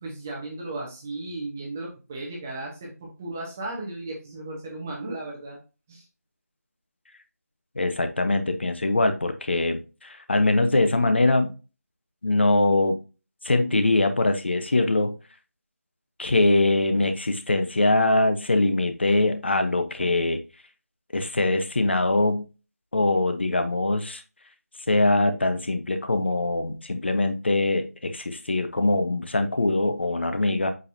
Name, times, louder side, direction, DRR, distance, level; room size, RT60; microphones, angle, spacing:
voice 1, 0.0-5.6 5.9-6.0, right 2 dB, 10° right, -2 dB, 0.9 m, -35 dB
voice 2, 7.8-11.5 12.2-13.0 13.4-15.1 16.2-20.4 21.1-22.5 22.9-24.2 24.9-30.7, left 2 dB, 40° left, 8 dB, 0.9 m, -22 dB
7.9 x 5.3 x 2.6 m, 0.31 s
figure-of-eight pair, 175°, 9 cm